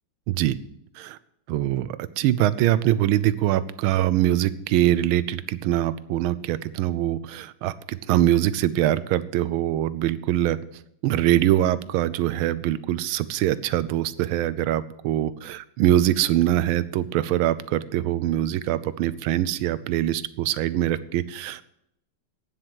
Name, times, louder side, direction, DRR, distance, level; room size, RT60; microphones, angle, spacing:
voice 1, 0.3-0.6 1.0-1.2 1.5-10.6 11.0-21.6, right 13 dB, 85° right, 16 dB, 1.4 m, -23 dB
9.0 x 7.7 x 8.9 m, 0.78 s
omnidirectional pair, 2.2 m